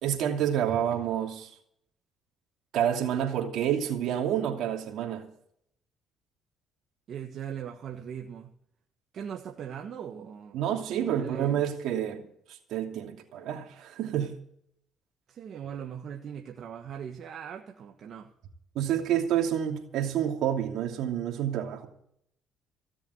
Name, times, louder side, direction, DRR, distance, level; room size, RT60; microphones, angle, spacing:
voice 1, 0.0-1.5 2.7-5.3 10.5-12.2 12.7-14.4 18.7-21.9, right 10 dB, 75° right, 2.8 m, -28 dB
voice 2, 7.1-8.5 9.1-10.6 11.0-11.6 15.3-18.3, right 8 dB, 55° right, 1.4 m, -39 dB
16.5 x 7.2 x 9.5 m
cardioid pair, 85°, 0 cm